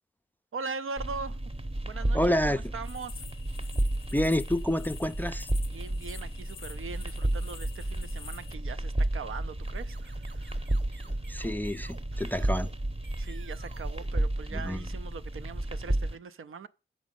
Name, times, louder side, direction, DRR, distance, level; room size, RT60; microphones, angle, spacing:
voice 1, 0.5-1.4 1.8-3.2 5.7-10.7 12.1-12.5 13.2-16.7, right 4 dB, 80° right, 0.5 m, -41 dB
sound 1, 1.0-16.2, right 1 dB, 25° right, 0.8 m, -32 dB
voice 2, 2.1-2.6 4.1-5.5 11.3-12.7 14.5-14.9, equal, 10° left, 0.4 m, -28 dB
sound 2, 2.8-8.5, left 7 dB, 70° left, 0.5 m, -49 dB
sound 3, 9.5-15.0, right 4 dB, 60° right, 0.9 m, -54 dB
7.3 x 5.1 x 5.2 m
wide cardioid pair, 65°, 21 cm